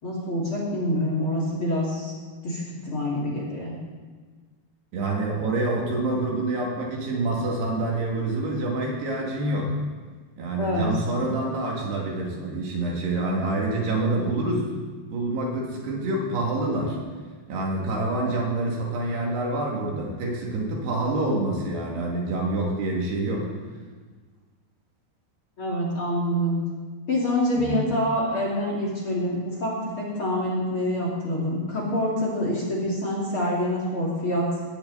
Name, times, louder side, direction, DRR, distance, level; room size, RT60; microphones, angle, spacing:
voice 1, 0.0-2.1 2.4-3.8 10.6-10.9 25.6-26.6 27.1-34.5, left 1 dB, 35° left, -4 dB, 3.0 m, -26 dB
voice 2, 4.9-9.8 10.4-14.7 15.1-17.0 17.5-23.5 27.6-27.8, right 2 dB, 70° right, -2 dB, 4.4 m, -27 dB
19.0 x 14.5 x 4.2 m, 1.4 s
omnidirectional pair, 5.0 m